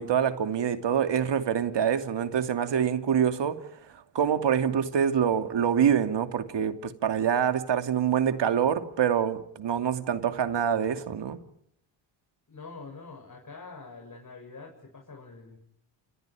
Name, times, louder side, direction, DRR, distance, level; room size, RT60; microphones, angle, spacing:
voice 1, 0.0-3.6 4.1-11.4, right 8 dB, 55° right, 2.8 m, -25 dB
voice 2, 12.5-15.6, left 4 dB, 40° left, 8.0 m, -45 dB
29.5 x 27.0 x 5.1 m
supercardioid pair, 60°, 50 cm